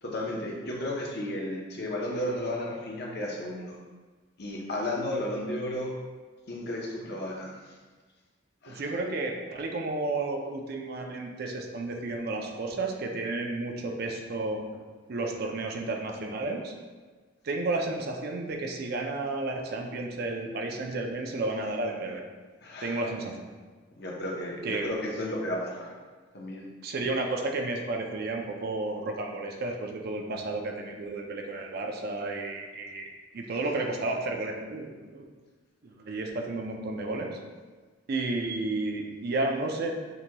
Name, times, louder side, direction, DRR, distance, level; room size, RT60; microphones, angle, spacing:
voice 1, 0.0-3.8 4.4-5.9 6.5-7.5 8.6-8.9 22.6-23.0 24.0-25.9 26.3-26.7, left 1 dB, 55° left, -2 dB, 0.8 m, -33 dB
voice 2, 8.7-14.6 15.1-16.7 17.4-22.2 22.8-23.5 24.6-24.8 26.8-35.2 35.8-37.3 38.1-39.9, right 2 dB, 55° right, 2 dB, 0.5 m, -32 dB
6.7 x 2.9 x 2.2 m, 1.4 s
head